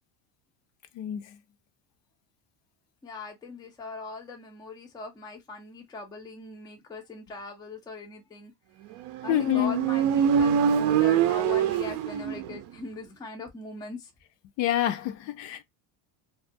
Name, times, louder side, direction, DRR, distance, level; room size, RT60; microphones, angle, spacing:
voice 1, 3.0-8.5 9.2-14.1, left 3 dB, 10° left, 0.4 m, -40 dB
Motorcycle, 9.0-12.7, right 8 dB, 55° right, 0.5 m, -24 dB
voice 2, 9.3-9.8 14.6-15.6, left 13 dB, 60° left, 0.6 m, -27 dB
2.4 x 2.2 x 2.5 m
cardioid pair, 130°, 49 cm